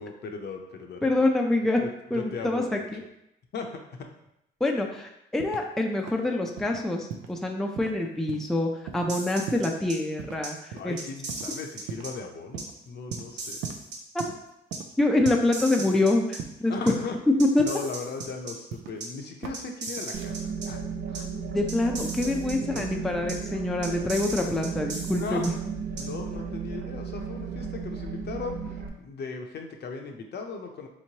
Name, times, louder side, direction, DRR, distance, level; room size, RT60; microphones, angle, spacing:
voice 1, 0.0-1.1 1.8-1.9 2.1-2.9 3.5-3.8 10.7-13.6 16.7-17.2 17.6-20.8 21.1-21.2 22.4-23.4 25.1-25.5 26.0-30.9, left 4 dB, 55° left, 3 dB, 0.6 m, -38 dB
voice 2, 1.0-1.8 2.1-3.0 4.6-11.0 14.1-14.2 15.0-16.7 17.4-17.6 21.5-25.5, left 2 dB, ahead, 2 dB, 0.4 m, -26 dB
sound 1, 5.4-5.8 6.1-6.3 6.6-6.8 7.1-7.4 7.8-8.0 8.3-8.6 8.9-9.1 9.5-9.8 10.2-10.4 10.7-10.9 11.3-11.5 11.9-12.2 12.5-12.7 13.1-13.8 14.2-14.4 14.7-15.0 15.3-16.1 16.4-17.2 17.6-17.9 18.2-19.0 19.4-19.6 19.9-20.3, right 7 dB, 85° right, 0.4 m, -39 dB
sound 2, 9.1-9.9 10.4-10.5 11.0-12.1 12.6-12.7 13.1-14.2 14.7-14.8 15.2-16.4 16.9-17.0 17.4-18.5 19.0-19.1 19.5-20.7 21.1-21.2 21.7-22.8 23.3-23.4 23.8-25.5 26.0-26.1, right 3 dB, 65° right, 1.1 m, -37 dB
sound 3, 20.1-28.9, right 6 dB, 45° right, 0.6 m, -34 dB
4.3 x 3.0 x 2.8 m, 0.82 s
cardioid pair, 90°, 20 cm